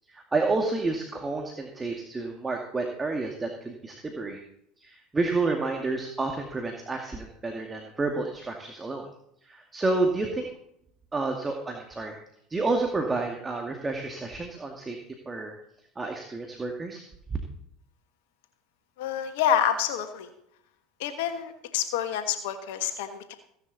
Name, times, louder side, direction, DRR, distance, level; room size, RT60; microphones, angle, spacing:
voice 1, 0.1-4.4 4.8-9.1 9.4-10.5 11.1-12.2 12.5-15.0 15.3-15.6 16.0-17.0, right 3 dB, 20° right, 2 dB, 2.2 m, -30 dB
voice 2, 19.0-20.3 21.0-23.3, left 9 dB, 70° left, 8 dB, 1.4 m, -28 dB
16.0 x 10.5 x 4.1 m, 0.74 s
hypercardioid pair, 80°, 0 cm